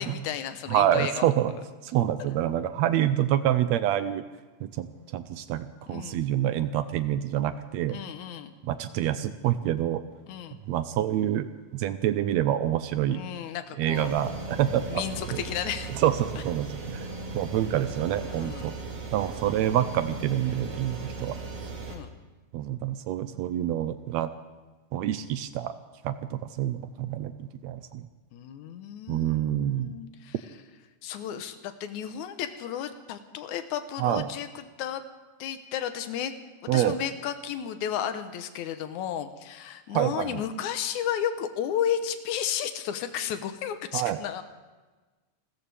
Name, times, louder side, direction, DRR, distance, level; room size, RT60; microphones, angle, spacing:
voice 1, 0.0-1.6 5.9-6.2 7.9-8.5 10.3-10.6 13.1-14.1 14.9-15.9 18.3-18.7 21.9-22.1 28.3-30.4 31.0-35.1 35.4-36.3 36.7-44.4, left 9 dB, 90° left, 9 dB, 2.3 m, -33 dB
voice 2, 0.7-1.5 1.8-4.2 4.6-4.9 5.1-8.0 8.6-10.0 10.7-13.2 13.8-15.0 15.3-15.4 16.0-17.0 17.3-18.8 19.1-21.4 22.5-24.3 24.9-25.7 26.0-28.1 29.1-29.9 34.0-34.3 36.7-37.0 39.9-40.4 43.9-44.2, right 11 dB, 75° right, 12 dB, 1.8 m, -27 dB
sound 1, 13.9-22.0, right 3 dB, 55° right, 2.9 m, -37 dB
29.5 x 14.0 x 3.4 m, 1.3 s
omnidirectional pair, 3.3 m